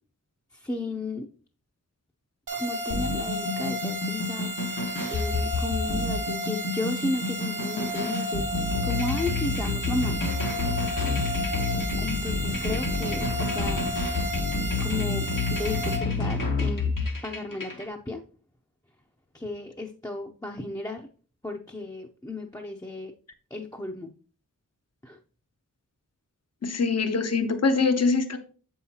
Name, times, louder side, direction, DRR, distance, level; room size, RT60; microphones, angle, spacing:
voice 1, 0.5-1.3 2.5-4.5 5.1-10.3 12.0-14.2 14.8-16.9 17.2-18.2 19.3-21.1 21.4-23.1 23.5-24.1 25.0-25.2, left 2 dB, 10° left, 1 dB, 0.6 m, -34 dB
sound 1, 2.5-16.0, right 1 dB, 75° right, 1.2 m, -33 dB
sound 2, 2.9-17.8, left 3 dB, 85° left, 1.4 m, -29 dB
voice 2, 26.6-28.4, left 4 dB, 50° left, 8 dB, 0.7 m, -23 dB
7.2 x 5.5 x 2.8 m, 0.40 s
wide cardioid pair, 50°, 32 cm